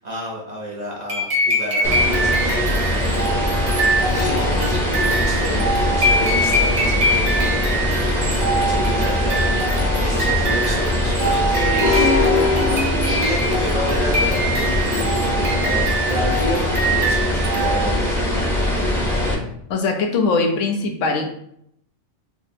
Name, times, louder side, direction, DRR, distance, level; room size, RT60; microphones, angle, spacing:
voice 1, 0.0-2.8 4.1-7.8 8.2-12.3 13.1-18.4, equal, 45° right, -3 dB, 0.6 m, -30 dB
sound 1, 1.1-18.1, right 1 dB, 80° right, 1.4 m, -24 dB
sound 2, 1.8-19.3, left 1 dB, ahead, 0.8 m, -21 dB
sound 3, 11.8-13.8, left 3 dB, 60° left, 0.4 m, -21 dB
voice 2, 19.7-21.3, left 3 dB, 75° left, 4 dB, 1.0 m, -21 dB
3.5 x 2.0 x 4.1 m, 0.70 s
omnidirectional pair, 1.3 m